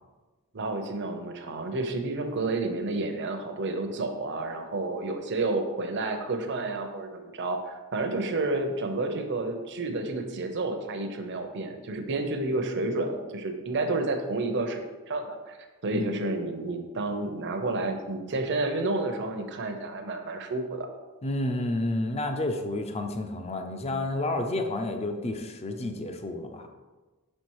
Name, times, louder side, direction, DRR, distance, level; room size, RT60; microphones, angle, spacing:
voice 1, 0.5-15.6 15.8-20.9, right 2 dB, 55° right, 6 dB, 0.7 m, -30 dB
voice 2, 21.2-26.7, left 2 dB, 30° left, 6 dB, 0.5 m, -30 dB
5.9 x 4.4 x 4.7 m, 1.2 s
head